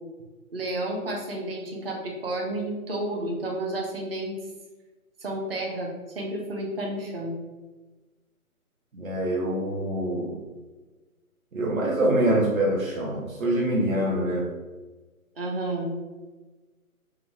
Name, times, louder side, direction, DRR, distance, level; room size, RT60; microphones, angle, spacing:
voice 1, 0.5-4.3 5.2-7.3 15.4-15.9, right 1 dB, 40° right, -1 dB, 1.0 m, -31 dB
voice 2, 8.9-10.4 11.5-14.5, right 1 dB, 65° right, -2 dB, 0.9 m, -25 dB
3.8 x 2.4 x 4.6 m, 1.2 s
hypercardioid pair, 165°, 44 cm